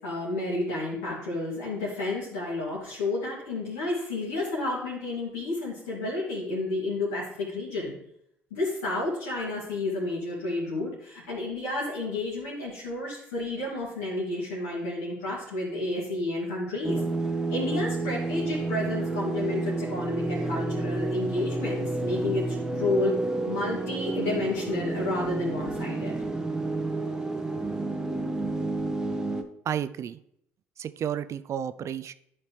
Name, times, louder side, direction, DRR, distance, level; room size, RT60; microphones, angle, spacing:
voice 1, 0.0-7.9 8.5-17.0 17.5-23.1 23.5-26.2, left 2 dB, 80° left, -7 dB, 2.3 m, -31 dB
sound 1, 16.8-29.4, right 2 dB, 10° right, 0.9 m, -30 dB
voice 2, 29.6-30.2 30.8-32.1, right 9 dB, 50° right, 13 dB, 0.4 m, -32 dB
11.0 x 4.3 x 3.2 m, 0.73 s
hypercardioid pair, 55°, 7 cm